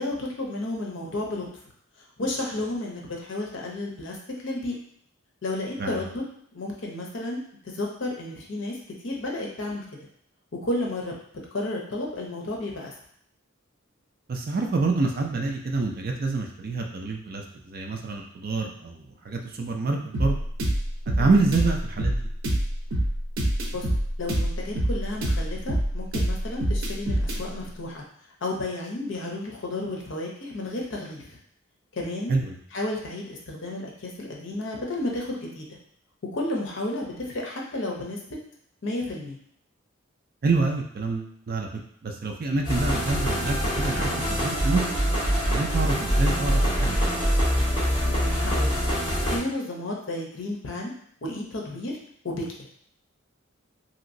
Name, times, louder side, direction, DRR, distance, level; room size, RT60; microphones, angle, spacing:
voice 1, 0.0-1.5 2.2-4.2 4.4-4.7 5.4-6.3 6.5-7.4 7.7-8.8 9.0-9.8 10.6-11.1 11.5-12.9 21.2-21.5 23.7-23.9 24.2-28.0 28.4-31.4 31.9-32.3 32.7-35.7 36.3-38.4 38.8-39.4 48.0-48.8 49.3-50.9 51.2-51.9 52.2-52.4, left 2 dB, 60° left, -1 dB, 0.7 m, -32 dB
voice 2, 14.3-20.4 21.2-22.2 32.3-32.6 40.4-41.7 42.0-44.8 45.5-47.1, right 3 dB, 45° right, 2 dB, 0.4 m, -27 dB
sound 1, 20.1-27.4, right 1 dB, 90° right, 0.6 m, -26 dB
sound 2, 42.6-49.4, equal, 25° left, 0.9 m, -24 dB
2.9 x 2.9 x 2.6 m, 0.64 s
head